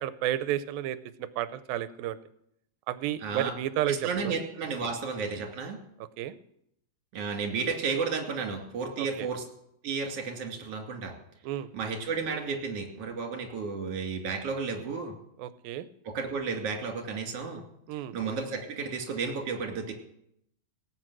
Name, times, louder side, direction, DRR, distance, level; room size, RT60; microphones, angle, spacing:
voice 1, 0.0-2.2 2.9-4.0 4.2-4.3 4.8-4.9 6.2-6.3 9.0-9.3 11.4-11.7 15.4-15.9 17.9-18.1, right 12 dB, 85° right, 14 dB, 2.4 m, -32 dB
voice 2, 3.2-3.5 3.9-5.8 7.1-9.4 9.8-11.1 11.7-15.1 16.0-17.6 17.9-19.9, right 5 dB, 45° right, 2 dB, 3.3 m, -32 dB
18.5 x 8.7 x 6.2 m, 0.74 s
omnidirectional pair, 4.1 m